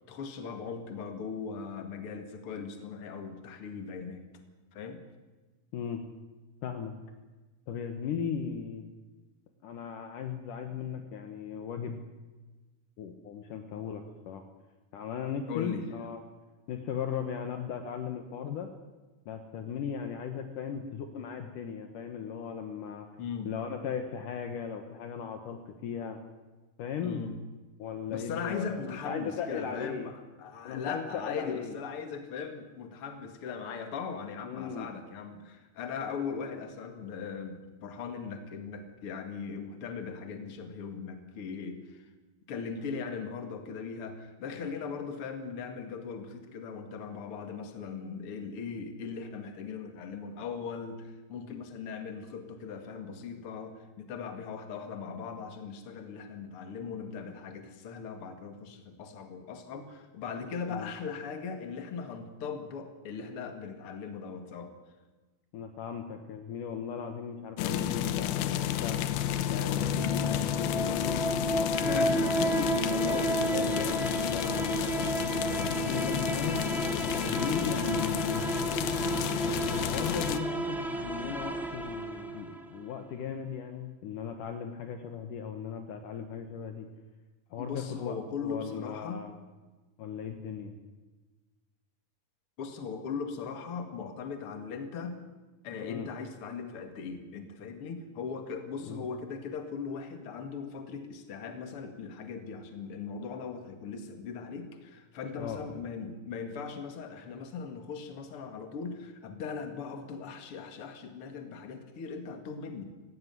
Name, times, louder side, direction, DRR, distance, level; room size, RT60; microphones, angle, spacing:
voice 1, 0.1-4.3 4.7-5.0 15.5-15.9 23.2-23.5 27.0-27.4 28.1-42.0 42.5-64.7 71.8-72.4 77.9-78.1 87.6-89.2 92.6-95.2 95.6-112.8, left 5 dB, 45° left, 7 dB, 2.5 m, -39 dB
voice 2, 6.6-6.9 7.7-8.9 9.6-12.0 13.0-14.4 14.9-16.2 16.7-18.7 19.3-23.1 23.5-26.2 26.8-27.3 27.8-30.1 30.6-31.8 34.4-34.9 60.7-60.9 65.5-69.0 69.5-75.1 75.6-76.6 77.0-78.4 79.7-86.9 87.5-88.2 88.4-89.3 90.0-90.8 95.8-96.1 98.8-99.1 105.4-105.6, left 7 dB, 65° left, 6 dB, 2.6 m, -37 dB
sound 1, 67.6-80.4, left 9 dB, 85° left, 2.8 m, -31 dB
sound 2, 69.8-82.8, right 1 dB, ahead, 0.8 m, -32 dB
18.0 x 16.5 x 9.5 m, 1.2 s
omnidirectional pair, 4.3 m